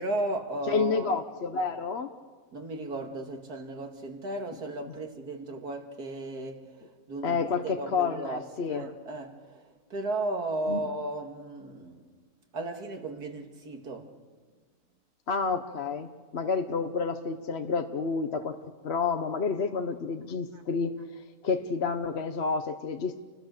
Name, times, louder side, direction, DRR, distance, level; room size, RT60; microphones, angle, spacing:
voice 1, 0.0-1.2 2.5-8.4 8.7-12.0 12.5-14.1 20.5-20.6, right 2 dB, 85° right, 2.6 m, -35 dB
voice 2, 0.7-2.1 7.2-8.8 10.7-10.8 15.3-18.6 18.8-23.2, left 5 dB, 45° left, 1.1 m, -29 dB
29.5 x 21.0 x 6.7 m
omnidirectional pair, 1.6 m